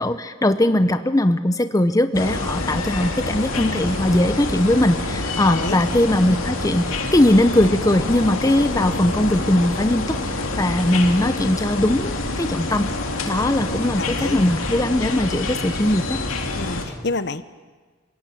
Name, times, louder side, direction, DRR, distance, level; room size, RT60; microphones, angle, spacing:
voice 1, 0.0-12.9 13.3-16.2, left 1 dB, 15° left, 10 dB, 0.7 m, -20 dB
sound 1, 2.1-16.9, left 2 dB, 90° left, 2.6 m, -27 dB
sound 2, 3.7-10.9, equal, 30° right, 7.4 m, -39 dB
voice 2, 5.5-6.1 14.0-14.4 16.5-17.4, left 3 dB, 55° left, 13 dB, 0.9 m, -28 dB
27.0 x 17.0 x 9.2 m, 1.4 s
head